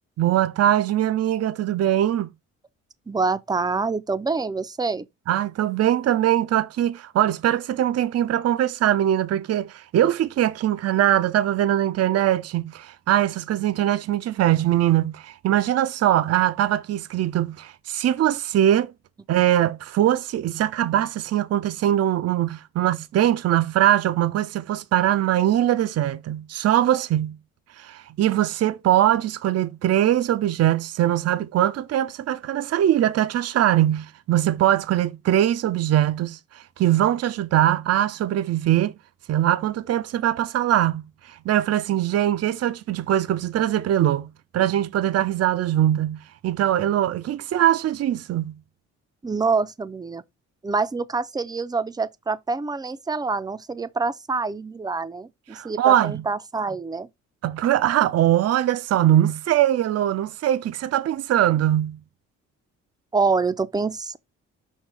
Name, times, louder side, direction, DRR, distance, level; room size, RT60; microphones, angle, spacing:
voice 1, 0.2-2.3 5.3-18.9 19.3-27.4 27.8-38.9 39.3-48.5 55.5-56.2 57.4-62.0, right 12 dB, 55° right, 0.6 m, -22 dB
voice 2, 3.1-5.1 49.2-50.2 50.6-57.1 63.1-64.2, right 4 dB, 15° right, 0.5 m, -26 dB
6.4 x 2.8 x 5.5 m
cardioid pair, 90°, 30 cm